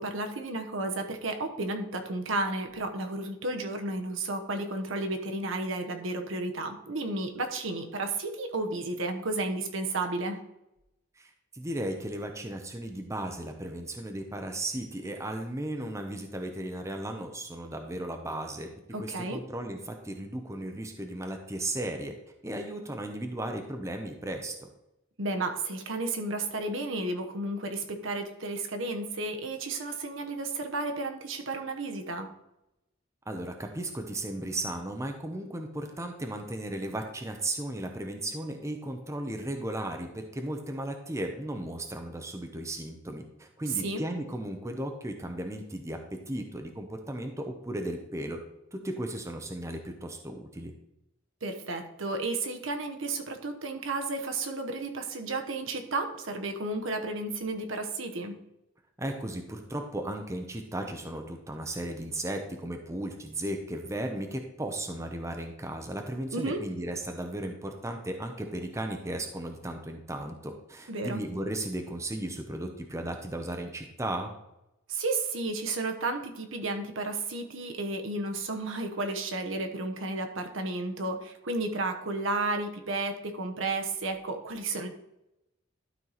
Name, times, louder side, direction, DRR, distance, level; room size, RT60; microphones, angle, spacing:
voice 1, 0.0-10.4 18.9-19.4 25.2-32.3 43.7-44.0 51.4-58.4 66.3-66.6 70.9-71.2 74.9-84.9, right 2 dB, 70° right, 4 dB, 1.0 m, -32 dB
voice 2, 11.2-18.7 19.0-22.1 22.4-24.7 33.3-48.4 48.7-50.7 59.0-74.3, right 1 dB, 15° right, 4 dB, 0.7 m, -35 dB
12.0 x 4.5 x 4.1 m, 0.86 s
head